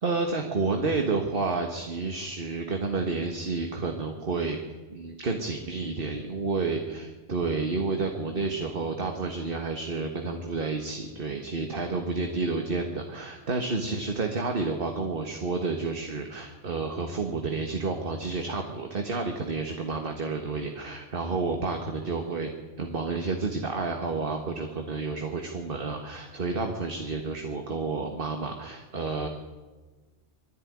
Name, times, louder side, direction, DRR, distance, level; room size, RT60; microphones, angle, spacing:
voice 1, 0.0-4.6 4.9-22.5 22.8-29.3, right 3 dB, 50° right, 4 dB, 1.7 m, -30 dB
21.0 x 14.0 x 9.5 m, 1.3 s
omnidirectional pair, 1.2 m